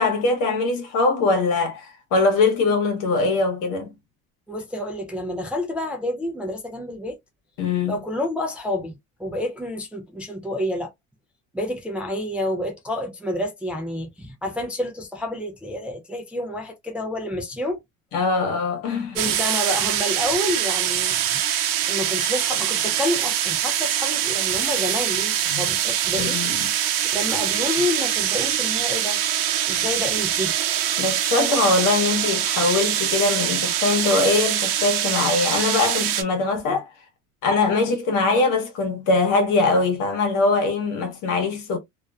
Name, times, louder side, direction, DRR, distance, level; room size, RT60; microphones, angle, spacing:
voice 1, 0.0-3.9 7.6-8.0 18.1-19.3 25.5-25.7 26.2-26.7 31.0-36.9 37.4-41.8, left 3 dB, 60° left, 1.1 m, -22 dB
voice 2, 4.5-7.2 7.9-8.9 9.2-10.9 11.5-17.8 19.1-21.2 21.9-26.4 27.1-29.2 29.7-30.6, left 1 dB, 5° right, 0.4 m, -29 dB
sound 1, 19.2-36.2, right 11 dB, 70° right, 0.7 m, -23 dB
2.5 x 2.1 x 2.3 m
cardioid pair, 125°, 35 cm